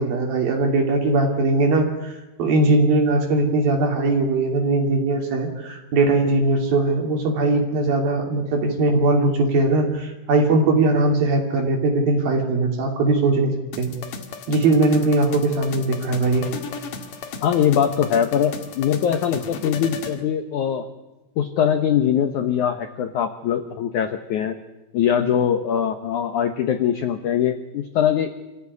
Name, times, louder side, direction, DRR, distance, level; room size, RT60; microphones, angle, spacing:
voice 1, 0.0-13.9 14.5-16.4, right 2 dB, 60° right, 2 dB, 4.4 m, -20 dB
sound 1, 13.7-20.2, left 5 dB, 55° left, 3.0 m, -35 dB
voice 2, 17.4-20.9 21.4-24.6 24.9-28.3, left 9 dB, 75° left, 8 dB, 1.8 m, -22 dB
27.0 x 15.0 x 9.7 m, 1.1 s
omnidirectional pair, 5.0 m